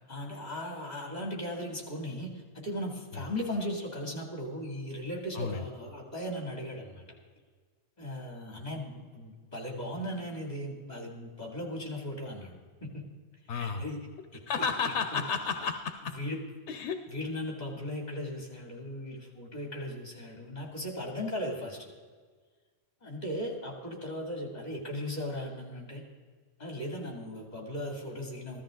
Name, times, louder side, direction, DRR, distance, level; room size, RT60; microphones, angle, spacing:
voice 1, 0.1-7.2 8.0-13.0 13.5-14.0 14.3-14.4 14.8-15.2 16.1-16.4 17.1-21.9 23.0-26.0 26.6-28.6, left 1 dB, 35° left, 1 dB, 2.5 m, -37 dB
voice 2, 13.5-13.8 14.5-16.1 16.7-17.0, left 5 dB, 80° left, 8 dB, 1.0 m, -32 dB
15.0 x 13.0 x 3.8 m, 1.5 s
omnidirectional pair, 1.2 m